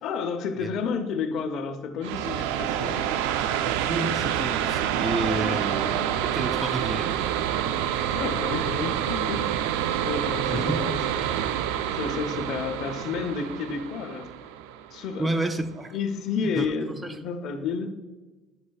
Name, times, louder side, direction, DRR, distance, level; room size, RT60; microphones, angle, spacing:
voice 1, 0.0-3.1 5.4-5.7 8.1-9.5 10.0-11.3 11.9-14.3 14.9-15.5 15.9-17.9, left 5 dB, 65° left, 7 dB, 0.8 m, -31 dB
sound 1, 2.0-15.4, right 10 dB, 90° right, 0.3 m, -27 dB
voice 2, 3.9-7.8 10.5-11.0 15.2-15.9 16.4-17.2, right 2 dB, 20° right, 9 dB, 0.6 m, -31 dB
9.7 x 6.2 x 2.3 m, 1.2 s
supercardioid pair, 90°, 0 cm